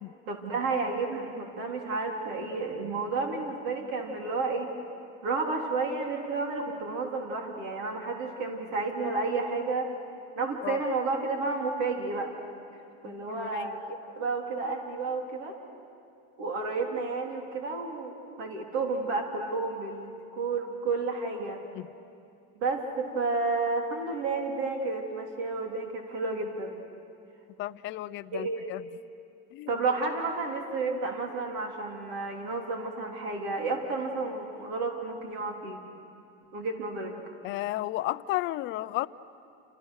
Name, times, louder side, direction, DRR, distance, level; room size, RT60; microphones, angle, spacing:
voice 1, 0.3-4.7 5.2-9.9 10.4-12.3 13.0-15.6 16.4-21.6 22.6-26.8 28.3-28.6 29.7-35.8 36.5-37.1, right 3 dB, 60° right, 1 dB, 3.8 m, -31 dB
voice 2, 13.0-13.7 21.7-21.9 27.6-28.9 29.5-29.8 37.4-39.1, left 16 dB, 40° left, 15 dB, 0.6 m, -33 dB
29.0 x 29.0 x 6.6 m, 2.5 s
supercardioid pair, 145°, 29 cm